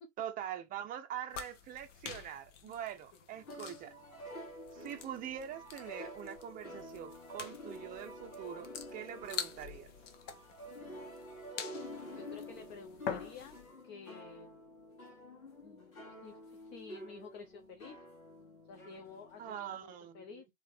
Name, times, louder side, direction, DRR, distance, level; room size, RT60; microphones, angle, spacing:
voice 1, 0.2-3.9 4.7-10.0 19.4-20.4, right 10 dB, 20° right, 0.6 m, -44 dB
sound 1, 1.3-13.7, left 7 dB, 60° left, 1.0 m, -47 dB
sound 2, 3.4-19.8, equal, 85° left, 2.0 m, -49 dB
voice 2, 10.7-11.1 12.1-13.6 13.8-14.7 15.6-18.0 18.7-20.5, left 5 dB, 25° left, 0.5 m, -52 dB
3.3 x 3.2 x 3.4 m
figure-of-eight pair, 100°, 42 cm